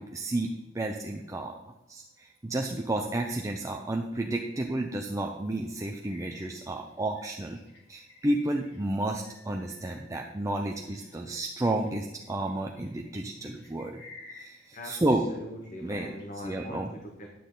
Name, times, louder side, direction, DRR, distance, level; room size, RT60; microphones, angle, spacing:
voice 1, 0.0-1.6 1.9-7.6 7.9-14.0 14.3-15.3 15.8-16.1 16.4-16.9, right 1 dB, 15° right, 2 dB, 0.6 m, -31 dB
sound 1, 6.0-11.2 11.6-15.4 15.6-16.7, left 2 dB, 60° left, 2.8 m, -53 dB
voice 2, 14.7-17.3, left 1 dB, 40° left, 2 dB, 1.0 m, -42 dB
10.0 x 8.9 x 3.9 m, 0.94 s
head